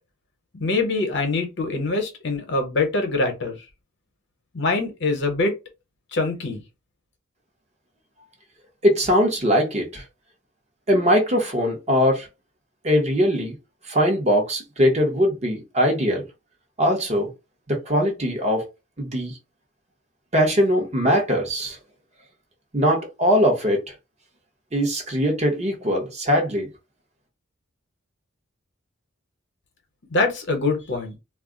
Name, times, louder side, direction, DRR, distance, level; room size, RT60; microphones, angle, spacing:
voice 1, 0.5-3.6 4.5-5.5 6.1-6.6 30.1-31.1, left 3 dB, 60° left, 0.8 m, -24 dB
voice 2, 8.8-10.0 10.9-12.3 12.8-13.5 13.9-16.2 16.8-17.3 17.7-18.7 19.0-19.4 20.3-21.8 22.7-23.9 24.7-26.7, equal, 35° right, 0.8 m, -21 dB
2.3 x 2.1 x 3.6 m
head